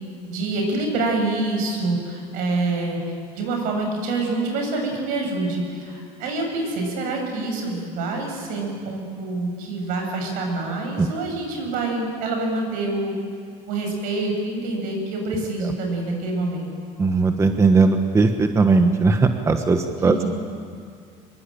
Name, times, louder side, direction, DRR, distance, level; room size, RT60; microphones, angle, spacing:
voice 1, 0.3-3.0 3.4-13.2 13.7-16.7 20.0-20.3, right 2 dB, 80° right, 2 dB, 7.4 m, -26 dB
voice 2, 17.0-20.2, right 4 dB, 20° right, 6 dB, 1.3 m, -18 dB
24.5 x 22.5 x 8.8 m, 2.1 s
cardioid pair, 135°, 14 cm